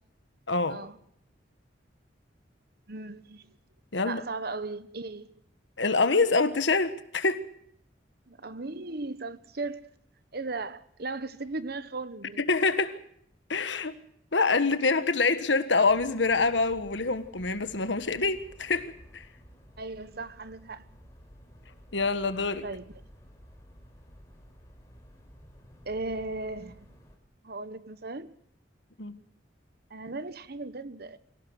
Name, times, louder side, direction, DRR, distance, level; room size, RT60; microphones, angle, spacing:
voice 1, 0.5-0.8 3.9-4.2 5.8-7.5 12.4-13.0 13.5-13.9 14.3-19.2 21.9-22.6 29.0-29.2, left 3 dB, 75° left, 1.5 m, -26 dB
voice 2, 2.9-3.5 4.0-5.4 8.3-9.8 10.3-12.4 19.8-20.9 22.6-22.9 25.8-26.9 27.4-28.3 29.9-31.2, right 3 dB, 55° right, 1.1 m, -37 dB
sound 1, 15.9-27.2, equal, 15° left, 4.7 m, -53 dB
25.0 x 17.0 x 6.4 m
head